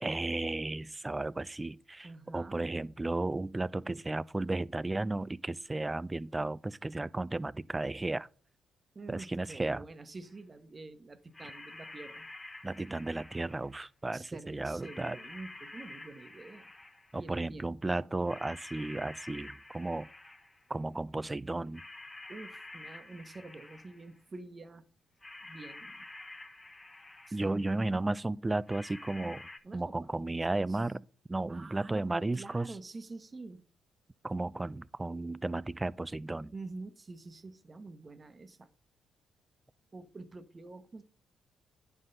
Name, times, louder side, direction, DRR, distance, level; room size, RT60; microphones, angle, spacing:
voice 1, 0.0-8.3 9.1-9.8 12.6-15.2 17.1-20.1 20.7-21.8 27.3-29.4 29.7-32.7 34.2-36.5, right 2 dB, 20° right, 0.4 m, -34 dB
voice 2, 2.0-2.6 8.9-12.3 14.1-16.7 17.1-18.1 22.3-24.8 25.4-26.0 27.3-27.9 29.6-30.8 31.5-32.0 32.3-33.6 36.5-38.7 39.9-41.0, right 3 dB, 35° right, 1.0 m, -47 dB
sound 1, 10.3-10.4 11.3-13.8 14.8-17.2 18.3-20.7 21.7-24.2 25.2-27.6 28.7-29.6, left 2 dB, 25° left, 1.1 m, -49 dB
9.4 x 5.8 x 3.9 m
supercardioid pair, 55°, 0 cm